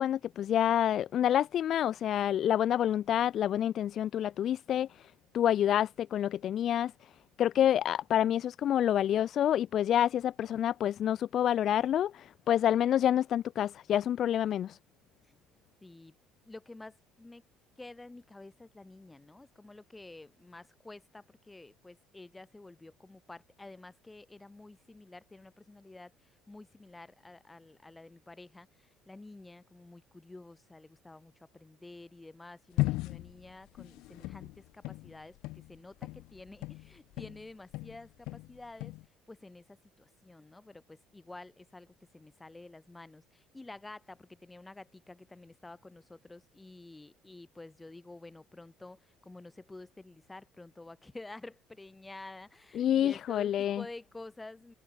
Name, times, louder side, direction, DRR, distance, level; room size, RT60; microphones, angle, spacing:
voice 1, 0.0-4.9 5.3-6.9 7.4-14.8 52.8-53.8, left 10 dB, 45° left, 0.4 m, -28 dB
voice 2, 15.8-16.1 16.4-17.4 17.8-38.9 39.3-54.7, left 2 dB, 10° left, 3.5 m, -50 dB
sound 1, 32.8-37.5 37.7-39.0, left 20 dB, 70° left, 1.3 m, -36 dB
cardioid pair, 140°, 0 cm